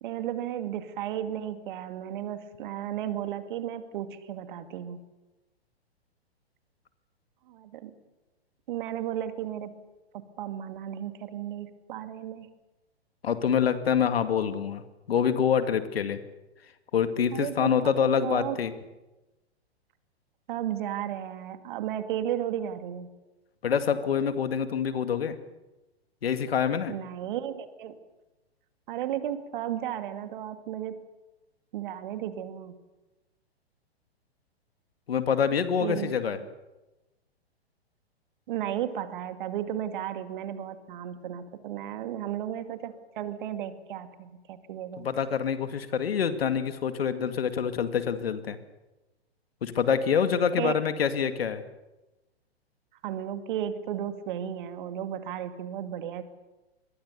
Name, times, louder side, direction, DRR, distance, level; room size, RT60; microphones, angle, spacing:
voice 1, 0.0-5.0 7.5-7.9 8.7-9.7 10.1-12.5 17.3-17.9 18.2-18.6 20.5-23.1 26.9-27.9 28.9-31.0 31.7-32.7 35.8-36.2 38.5-45.1 50.6-50.7 53.0-56.2, right 10 dB, 50° right, 9 dB, 2.4 m, -34 dB
voice 2, 13.2-14.8 15.1-16.2 16.9-18.7 23.6-25.4 26.2-26.9 35.1-36.4 45.0-48.6 49.6-51.6, left 7 dB, 65° left, 10 dB, 2.2 m, -26 dB
26.0 x 21.5 x 7.0 m, 1.0 s
figure-of-eight pair, 115°, 32 cm